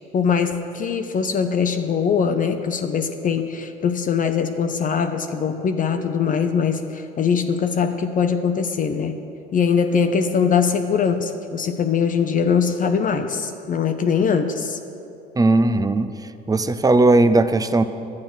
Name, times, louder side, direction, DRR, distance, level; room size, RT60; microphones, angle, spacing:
voice 1, 0.1-9.2 9.5-14.8, left 6 dB, 40° left, 7 dB, 0.7 m, -22 dB
voice 2, 15.4-16.1 16.5-17.8, right 2 dB, 15° right, 12 dB, 0.6 m, -17 dB
11.0 x 8.6 x 6.2 m, 2.7 s
supercardioid pair, 80°, 21 cm